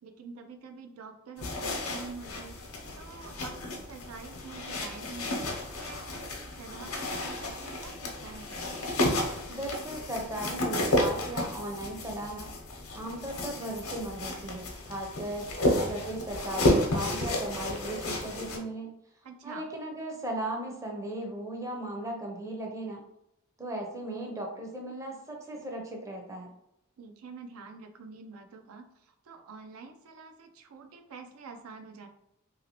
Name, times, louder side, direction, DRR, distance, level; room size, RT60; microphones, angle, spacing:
voice 1, 0.0-2.6 3.0-5.5 5.8-8.5 19.2-19.7 27.0-32.1, right 4 dB, 75° right, 4 dB, 0.4 m, -47 dB
sound 1, 1.4-18.6, left 1 dB, 75° left, 0.7 m, -32 dB
voice 2, 9.5-12.5 12.9-15.5 15.8-19.0 19.4-23.0 23.6-26.5, right 1 dB, 15° right, 0 dB, 0.5 m, -37 dB
2.9 x 2.7 x 2.8 m, 0.82 s
head